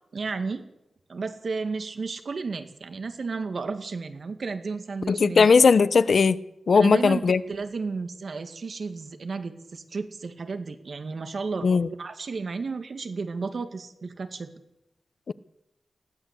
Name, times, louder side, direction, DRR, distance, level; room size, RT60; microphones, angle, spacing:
voice 1, 0.1-0.6 1.1-5.5 6.7-11.7 12.0-14.5, right 4 dB, 65° right, 2.1 m, -33 dB
voice 2, 5.1-6.4 6.7-7.4 11.6-11.9 15.3-15.4, left 5 dB, 70° left, 0.8 m, -18 dB
20.5 x 16.0 x 8.4 m
wide cardioid pair, 110°, 0 cm